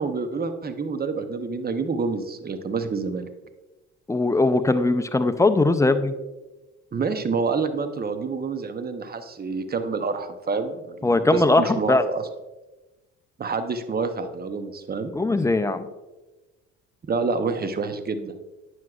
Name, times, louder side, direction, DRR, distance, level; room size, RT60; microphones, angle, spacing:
voice 1, 0.0-3.3 6.9-12.2 13.4-15.1 17.1-18.3, right 4 dB, 30° right, 9 dB, 0.8 m, -28 dB
voice 2, 4.1-6.1 11.0-12.1 15.1-15.9, left 2 dB, 10° left, 10 dB, 0.5 m, -20 dB
9.3 x 6.1 x 2.4 m, 1.1 s
supercardioid pair, 65°, 33 cm